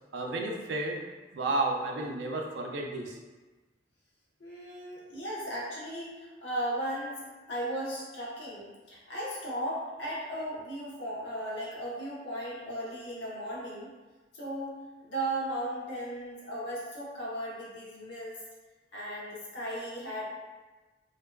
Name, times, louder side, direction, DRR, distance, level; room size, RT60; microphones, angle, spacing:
voice 1, 0.1-1.0 1.3-3.2, right 2 dB, 90° right, 1 dB, 0.4 m, -32 dB
voice 2, 4.4-13.9 14.3-18.3 18.9-20.2, right 1 dB, 85° left, -6 dB, 0.8 m, -36 dB
2.5 x 2.2 x 2.2 m, 1.2 s
head